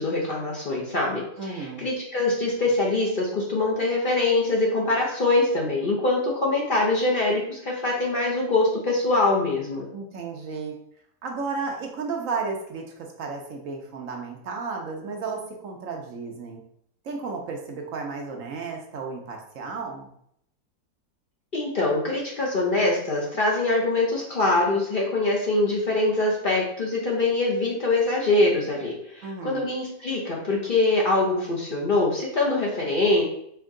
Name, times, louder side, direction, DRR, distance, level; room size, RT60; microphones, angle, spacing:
voice 1, 0.0-9.9 21.5-33.2, left 2 dB, 40° left, -3 dB, 0.8 m, -24 dB
voice 2, 1.4-1.9 9.9-10.8 11.2-16.6 17.0-20.1 29.2-29.7, right 4 dB, 65° right, 2 dB, 1.0 m, -33 dB
4.5 x 3.0 x 3.7 m, 0.71 s
omnidirectional pair, 1.6 m